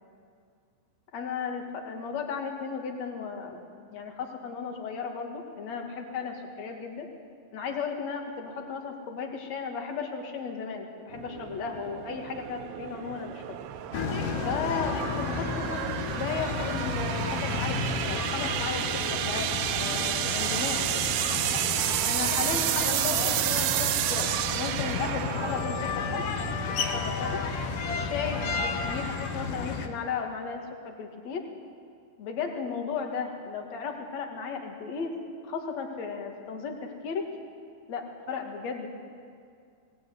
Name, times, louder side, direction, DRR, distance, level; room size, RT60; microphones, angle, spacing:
voice 1, 1.1-7.1 7.5-13.6 14.4-15.8 16.1-19.5 19.7-21.0 22.0-26.3 26.6-27.4 27.9-31.4 32.2-35.1 35.4-37.3 37.9-38.9, left 5 dB, 45° left, 3 dB, 2.6 m, -35 dB
sound 1, 11.1-26.5, right 12 dB, 80° right, 2.8 m, -31 dB
sound 2, 13.9-29.9, left 4 dB, 65° left, 2.2 m, -32 dB
21.5 x 18.0 x 9.6 m, 2.3 s
omnidirectional pair, 5.6 m